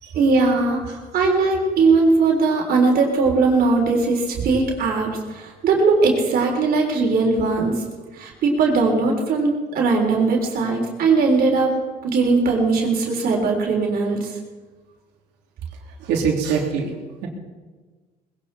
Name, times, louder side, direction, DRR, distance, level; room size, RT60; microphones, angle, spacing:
voice 1, 0.1-7.7 8.1-11.7 12.0-14.4, right 3 dB, 60° right, 0 dB, 3.8 m, -19 dB
voice 2, 16.0-16.9, right 6 dB, 90° right, 0 dB, 3.1 m, -22 dB
20.0 x 16.0 x 4.2 m, 1.4 s
cardioid pair, 110°, 17 cm